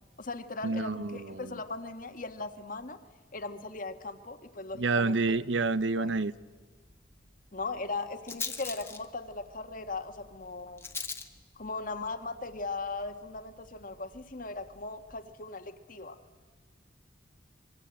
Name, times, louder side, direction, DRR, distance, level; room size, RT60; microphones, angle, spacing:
voice 1, 0.0-3.0 3.3-5.4 6.0-6.2 7.5-10.9 11.6-16.2, left 3 dB, 45° left, 1.5 m, -38 dB
voice 2, 0.6-1.6 4.8-6.3, right 3 dB, 80° right, 0.7 m, -29 dB
Rattle, 5.3-15.2, left 5 dB, 15° left, 1.2 m, -45 dB
26.0 x 23.0 x 8.7 m
head